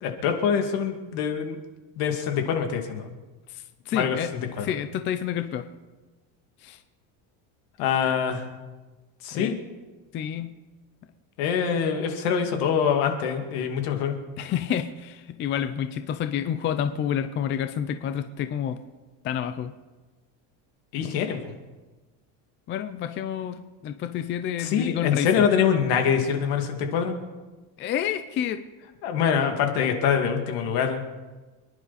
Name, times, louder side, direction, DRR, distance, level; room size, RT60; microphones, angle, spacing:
voice 1, 0.0-1.6 2.0-3.1 3.9-4.7 7.8-8.5 9.2-9.5 11.4-14.2 20.9-21.5 24.6-27.2 29.0-31.0, left 7 dB, 65° left, 4 dB, 2.4 m, -25 dB
voice 2, 3.5-4.3 4.6-5.7 6.6-6.8 9.3-9.5 10.1-10.6 14.4-18.8 19.2-19.7 22.7-25.5 27.8-28.6, left 9 dB, 25° left, 9 dB, 0.5 m, -29 dB
27.5 x 10.5 x 4.2 m, 1.2 s
cardioid pair, 170°, 44 cm